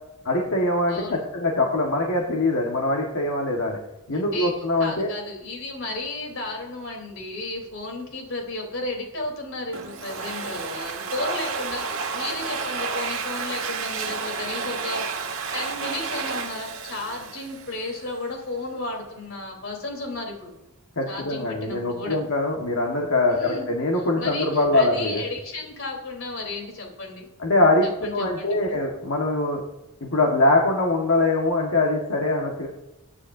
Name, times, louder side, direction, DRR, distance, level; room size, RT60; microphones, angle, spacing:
voice 1, 0.2-3.8 4.1-5.1 21.0-25.2 27.4-29.6 30.0-32.7, left 2 dB, 80° left, -1 dB, 1.5 m, -23 dB
voice 2, 0.9-1.3 4.1-4.5 4.8-20.5 21.1-22.2 23.3-23.7 24.2-27.3 27.8-28.8, left 2 dB, 65° left, 1 dB, 3.6 m, -33 dB
Domestic sounds home sounds, 9.7-18.2, right 5 dB, 65° right, 1.5 m, -31 dB
22.5 x 9.7 x 2.7 m, 0.95 s
head